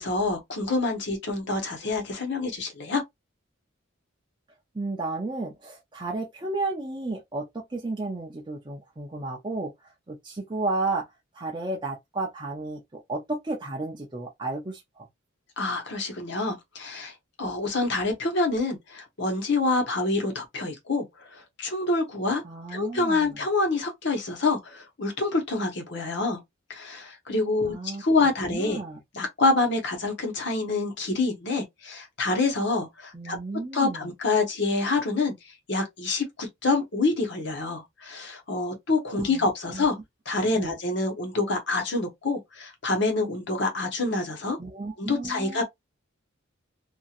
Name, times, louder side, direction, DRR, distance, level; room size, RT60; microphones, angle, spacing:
voice 1, 0.0-3.0 15.6-17.1 17.4-21.1 21.3-22.4 22.7-26.4 26.7-28.8 29.1-33.4 33.7-35.3 35.7-40.0 40.3-44.6 45.0-45.6, left 3 dB, 60° left, 1.1 m, -27 dB
voice 2, 4.7-9.7 10.1-11.1 11.3-15.1 22.4-23.4 27.7-28.0 28.5-29.0 33.1-34.1 39.2-39.8 40.5-40.7 44.6-45.6, right 2 dB, 25° right, 0.5 m, -33 dB
2.9 x 2.5 x 2.4 m
head